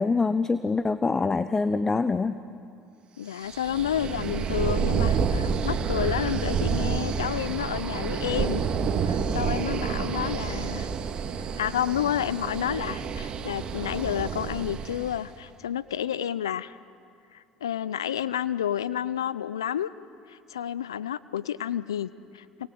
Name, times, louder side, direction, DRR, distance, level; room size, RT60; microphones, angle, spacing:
voice 1, 0.0-2.4, left 4 dB, 20° left, 12 dB, 1.0 m, -25 dB
voice 2, 3.2-8.6 9.0-10.9 11.6-16.8 17.3-19.9 20.3-22.7, left 10 dB, 90° left, 17 dB, 0.6 m, -30 dB
sound 1, 3.4-15.2, right 6 dB, 45° right, 2.2 m, -29 dB
29.0 x 22.5 x 7.8 m, 2.4 s
hypercardioid pair, 70°, 2 cm